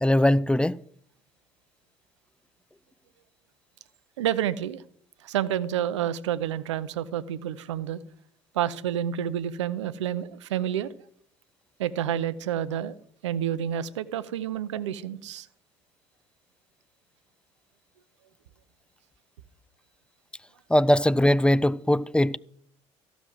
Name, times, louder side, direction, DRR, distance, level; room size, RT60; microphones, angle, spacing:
voice 1, 0.0-0.8 20.7-22.4, left 1 dB, 5° left, 0.4 m, -21 dB
voice 2, 4.2-4.8 5.2-8.0 8.5-10.9 11.8-12.9 13.2-15.5, right 10 dB, 85° right, 0.6 m, -29 dB
15.0 x 6.1 x 7.8 m
hypercardioid pair, 55°, 15 cm